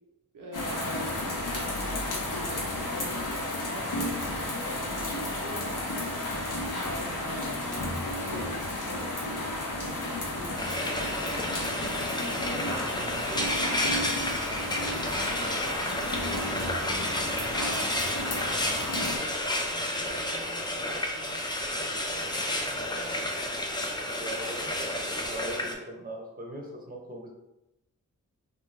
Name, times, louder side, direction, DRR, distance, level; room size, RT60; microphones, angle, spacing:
voice 1, 0.3-1.1 1.5-11.2 11.7-14.1 14.7-17.2 17.5-17.9 18.3-21.4 21.8-23.2, right 1 dB, 80° right, 0 dB, 0.6 m, -44 dB
sound 1, 0.5-19.2, left 1 dB, 75° left, 0.7 m, -33 dB
Frying (food), 10.6-25.7, left 1 dB, 15° left, 0.4 m, -31 dB
voice 2, 24.2-27.3, right 1 dB, 25° right, 0 dB, 0.7 m, -40 dB
2.6 x 2.3 x 3.1 m, 0.93 s
wide cardioid pair, 65°, 32 cm